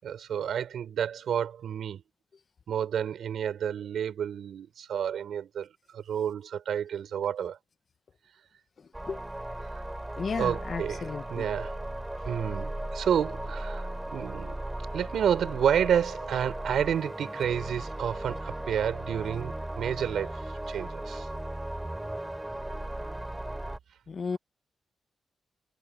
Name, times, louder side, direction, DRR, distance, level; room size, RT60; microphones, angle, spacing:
voice 1, 0.0-2.0 2.7-5.7 5.9-7.6 10.4-11.8 12.3-14.6 14.9-21.3, right 9 dB, 80° right, 5.4 m, -30 dB
sound 1, 8.9-23.8, right 1 dB, 10° right, 3.8 m, -37 dB
voice 2, 10.2-11.4 24.1-24.4, left 5 dB, 50° left, 1.2 m, -34 dB
cardioid pair, 110°, 0 cm